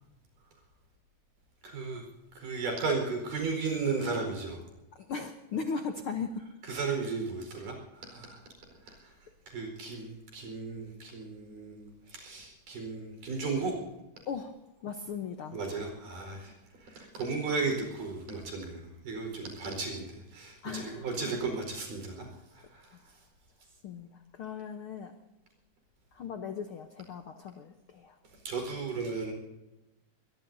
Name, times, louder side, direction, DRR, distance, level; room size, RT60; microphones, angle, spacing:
voice 1, 1.6-2.0 2.3-4.6 6.7-8.4 8.9-9.1 9.5-13.8 15.5-16.5 16.8-22.3 22.5-23.0 28.5-29.3, right 4 dB, 80° right, 2 dB, 6.3 m, -35 dB
voice 2, 4.9-6.4 14.3-14.6 14.8-15.6 20.6-21.1 23.8-25.1 26.1-28.2, left 5 dB, 75° left, 6 dB, 1.2 m, -38 dB
23.0 x 21.5 x 2.7 m, 1.0 s
omnidirectional pair, 3.8 m